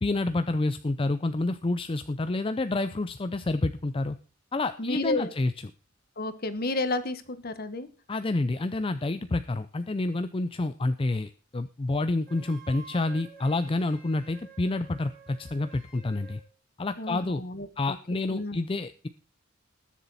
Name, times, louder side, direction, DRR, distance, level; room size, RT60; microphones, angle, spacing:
voice 1, 0.0-4.2 4.5-5.5 8.1-16.4 16.8-17.4 17.8-19.1, left 2 dB, 25° left, 11 dB, 0.5 m, -28 dB
voice 2, 4.8-5.3 6.2-7.9 17.0-18.0 18.3-18.6, left 2 dB, 50° left, 12 dB, 1.3 m, -31 dB
Wind instrument woodwind instrument, 12.2-16.4, right 4 dB, 45° right, 6.7 m, -50 dB
20.0 x 7.3 x 4.1 m, 0.38 s
head